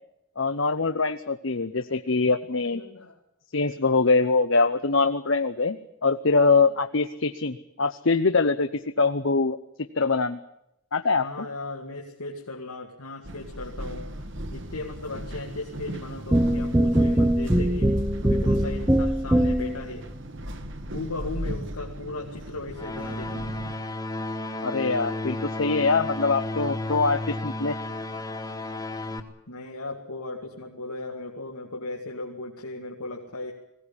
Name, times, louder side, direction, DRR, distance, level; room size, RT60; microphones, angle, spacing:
voice 1, 0.4-2.8 3.5-10.4 10.9-11.2 24.6-27.8, left 4 dB, 60° left, 9 dB, 0.8 m, -23 dB
voice 2, 2.7-3.2 11.2-20.1 20.9-23.6 29.5-33.5, left 2 dB, 85° left, 0 dB, 2.4 m, -37 dB
sound 1, 13.2-23.7, equal, 55° right, 1.7 m, -37 dB
sound 2, 16.3-19.8, right 1 dB, 15° right, 0.9 m, -22 dB
sound 3, 22.8-29.2, left 2 dB, 15° left, 1.6 m, -32 dB
20.5 x 17.0 x 10.0 m, 0.83 s
head